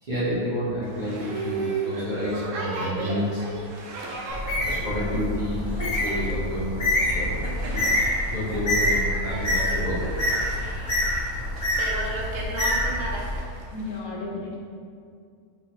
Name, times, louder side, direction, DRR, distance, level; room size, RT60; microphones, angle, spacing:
voice 1, 0.0-3.5 4.6-5.7 6.0-7.4 7.7-7.9 8.3-10.0, equal, 40° right, -10 dB, 0.9 m, -29 dB
Boat Water vehicle, 0.8-14.0, right 3 dB, 70° right, 0.9 m, -35 dB
Bird, 4.3-13.4, left 1 dB, 40° left, 0.8 m, -26 dB
voice 2, 13.7-14.6, left 3 dB, 75° left, -2 dB, 1.0 m, -34 dB
5.0 x 2.2 x 2.9 m, 2.2 s
omnidirectional pair, 1.6 m